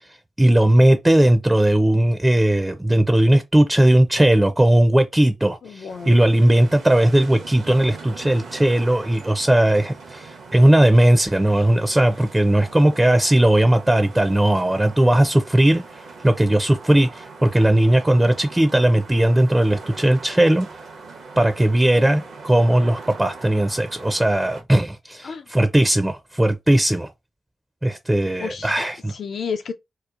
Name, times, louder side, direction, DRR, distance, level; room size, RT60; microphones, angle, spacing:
voice 1, 0.4-20.7 21.4-27.1 27.8-29.1, right 1 dB, 15° right, 0.4 m, -18 dB
voice 2, 5.6-6.1 25.2-25.5 28.4-28.8 29.1-29.7, left 6 dB, 65° left, 0.4 m, -31 dB
sound 1, 5.9-24.6, right 4 dB, 75° right, 0.7 m, -41 dB
2.8 x 2.1 x 2.4 m
supercardioid pair, 45°, 0 cm